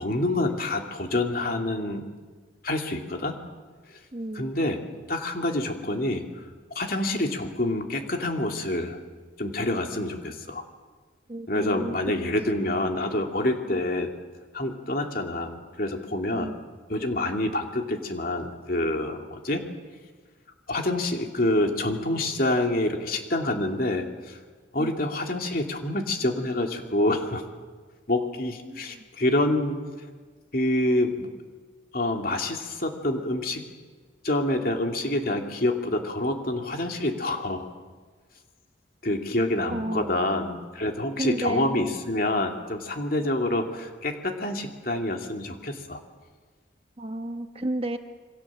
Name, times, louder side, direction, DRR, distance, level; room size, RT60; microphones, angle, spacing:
voice 1, 0.0-2.0 2.6-3.4 4.3-4.8 5.1-6.5 6.7-9.0 9.4-10.6 11.5-14.1 14.5-16.5 16.9-19.6 20.7-24.4 24.7-27.5 28.1-30.1 30.5-31.3 31.9-33.6 34.2-37.7 39.0-46.0, left 1 dB, 50° left, 3 dB, 2.8 m, -27 dB
voice 2, 4.1-4.5 11.3-11.9 16.3-16.6 24.8-24.9 28.7-28.8 39.7-40.4 41.2-41.9 47.0-48.0, right 1 dB, 30° right, 8 dB, 1.1 m, -32 dB
28.0 x 24.0 x 7.5 m, 1.4 s
head